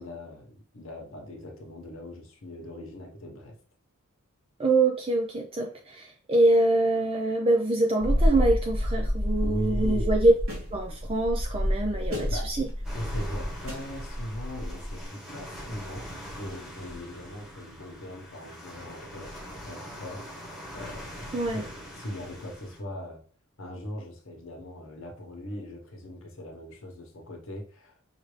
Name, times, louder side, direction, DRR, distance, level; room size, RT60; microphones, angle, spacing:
voice 1, 0.0-3.6 9.4-10.2 12.3-12.6 12.9-23.2 23.6-28.1, left 1 dB, 60° left, 1.1 m, -40 dB
voice 2, 4.6-10.3 10.7-12.7 21.3-21.6, right 2 dB, 25° right, 0.5 m, -24 dB
sound 1, 8.0-15.0, equal, 65° right, 1.6 m, -29 dB
sound 2, 12.8-22.8, equal, ahead, 1.1 m, -43 dB
5.6 x 2.6 x 3.2 m
head